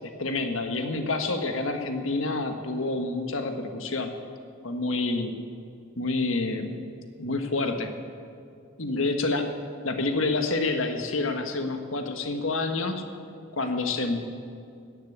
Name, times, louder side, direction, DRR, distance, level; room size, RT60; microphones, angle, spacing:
voice 1, 0.2-4.1 4.6-5.3 6.0-6.8 7.2-7.9 8.8-9.5 9.8-13.0 13.5-14.2, left 3 dB, 80° left, 6 dB, 1.5 m, -28 dB
14.5 x 10.5 x 8.6 m, 2.4 s
head